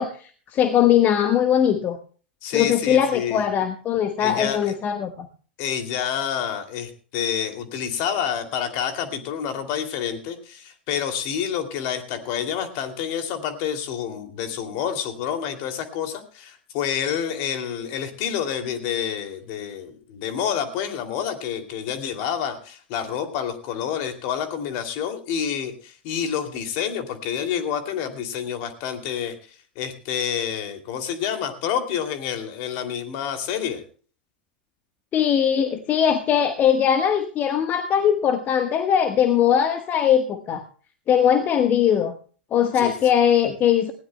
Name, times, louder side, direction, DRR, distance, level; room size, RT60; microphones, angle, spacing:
voice 1, 0.0-2.0 2.5-5.3 35.1-40.6 41.1-42.1 42.5-43.9, left 9 dB, 35° left, 8 dB, 1.3 m, -20 dB
voice 2, 2.4-3.4 4.2-4.7 5.6-29.3 29.8-33.8 42.8-42.9, left 8 dB, 50° left, 6 dB, 2.6 m, -28 dB
20.0 x 16.5 x 2.2 m, 0.41 s
figure-of-eight pair, 95°, 6 cm